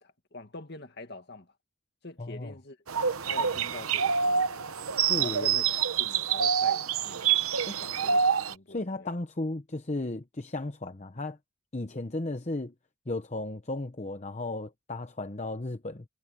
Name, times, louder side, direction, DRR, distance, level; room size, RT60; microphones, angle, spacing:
voice 1, 0.0-1.5 2.0-2.8 3.2-4.7 5.2-7.2 7.8-9.1, left 2 dB, 50° left, 2.1 m, -45 dB
voice 2, 2.2-2.5 5.1-5.6 7.7-7.8 8.7-11.4 11.7-12.7 13.1-16.0, left 2 dB, 30° left, 0.9 m, -35 dB
sound 1, 2.9-8.5, right 7 dB, 85° right, 0.9 m, -26 dB
head